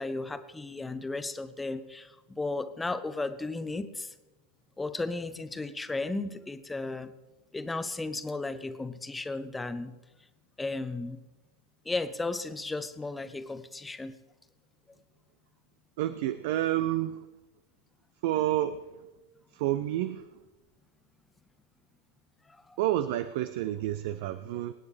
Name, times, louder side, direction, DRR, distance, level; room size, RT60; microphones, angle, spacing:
voice 1, 0.0-4.1 4.8-7.1 7.5-9.9 10.6-11.2 11.8-14.1 22.5-22.8, left 3 dB, 10° left, 12 dB, 0.8 m, -35 dB
voice 2, 16.0-17.2 18.2-18.8 19.5-20.2 22.8-24.7, right 13 dB, 50° right, 12 dB, 0.5 m, -29 dB
25.0 x 9.6 x 3.3 m, 1.1 s
figure-of-eight pair, 90°, 0 cm